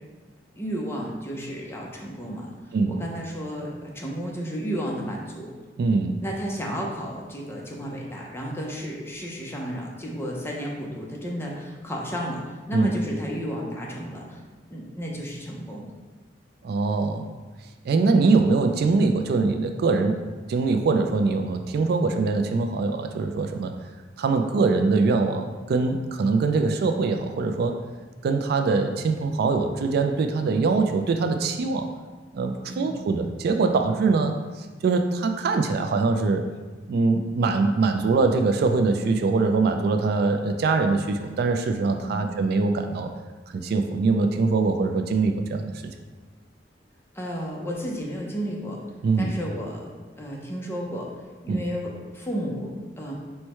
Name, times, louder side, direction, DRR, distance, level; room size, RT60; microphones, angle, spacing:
voice 1, 0.6-2.5 2.9-5.6 6.2-14.4 14.7-15.9 32.7-32.9 42.1-42.3 47.1-48.8 49.2-49.9 50.2-51.1 51.4-53.1, equal, 15° left, -2 dB, 0.6 m, -32 dB
voice 2, 5.8-6.2 12.7-12.9 16.6-17.3 17.8-20.2 20.5-23.7 24.2-27.8 28.2-31.9 32.3-36.4 36.9-43.1 43.5-45.7 49.0-49.3 51.5-51.6, right 4 dB, 60° right, 6 dB, 0.3 m, -23 dB
4.5 x 2.2 x 4.3 m, 1.3 s
head